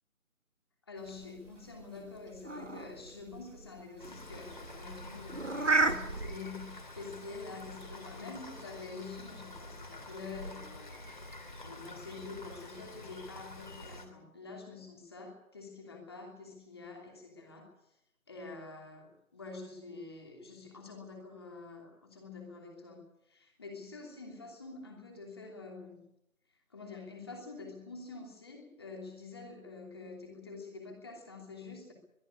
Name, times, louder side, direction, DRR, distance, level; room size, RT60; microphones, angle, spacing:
voice 1, 0.9-11.0 11.6-17.7 18.3-26.0 26.7-31.9, left 4 dB, 20° left, 1 dB, 3.0 m, -47 dB
sound 1, 1.1-6.4, right 3 dB, 55° right, 2.0 m, -34 dB
Rain, 4.0-14.1, left 1 dB, 35° left, 3.1 m, -47 dB
23.0 x 13.0 x 9.8 m, 0.84 s
figure-of-eight pair, 165°, 42 cm